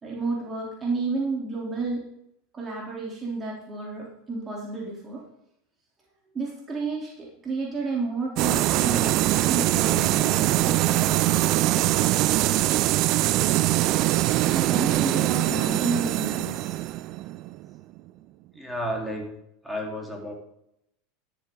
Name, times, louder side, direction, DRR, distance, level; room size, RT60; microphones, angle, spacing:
voice 1, 0.0-2.0 2.5-5.2 6.3-12.1 14.4-16.8, right 3 dB, 25° right, -3 dB, 3.6 m, -31 dB
sound 1, 8.4-18.0, right 16 dB, 50° right, 0.5 m, -23 dB
voice 2, 18.5-19.3 19.6-20.3, equal, ahead, -1 dB, 4.0 m, -32 dB
12.5 x 11.0 x 4.0 m, 0.77 s
hypercardioid pair, 90°, 0 cm